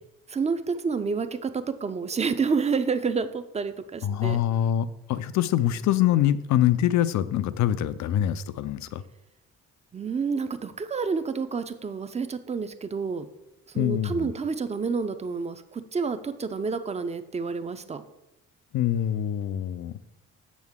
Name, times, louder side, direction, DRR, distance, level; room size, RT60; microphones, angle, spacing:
voice 1, 0.3-4.4 9.9-13.3 13.7-18.0, right 5 dB, 20° right, 11 dB, 0.5 m, -29 dB
voice 2, 4.0-9.0 13.8-14.3 18.7-20.0, left 11 dB, 70° left, 15 dB, 0.5 m, -24 dB
6.3 x 6.2 x 3.6 m, 0.91 s
cardioid pair, 90°, 30 cm